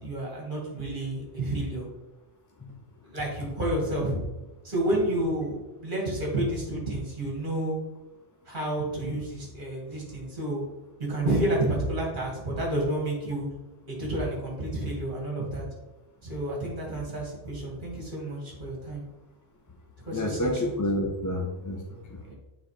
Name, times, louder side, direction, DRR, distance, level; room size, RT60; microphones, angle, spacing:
voice 1, 0.0-1.9 3.0-4.2 4.6-7.8 8.5-10.6 11.1-13.5 13.9-15.7 16.2-19.0 20.0-20.7 22.2-22.3, right 1 dB, 45° right, -3 dB, 2.0 m, -30 dB
voice 2, 20.1-22.2, left 1 dB, 20° left, 1 dB, 0.7 m, -29 dB
8.5 x 4.0 x 3.3 m, 1.0 s
omnidirectional pair, 1.2 m